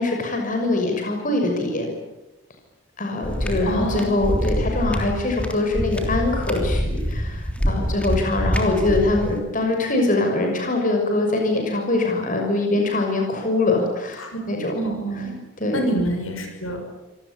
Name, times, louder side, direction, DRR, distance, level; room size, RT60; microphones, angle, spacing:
voice 1, 0.0-1.9 3.0-14.7 15.6-15.8, left 2 dB, 35° left, 3 dB, 6.4 m, -23 dB
sound 1, 3.2-9.4, equal, 5° left, 3.2 m, -25 dB
voice 2, 3.7-4.3 14.2-14.3 14.7-15.3 15.7-16.9, right 1 dB, 70° left, 4 dB, 6.3 m, -27 dB
26.5 x 19.0 x 10.0 m, 1.0 s
head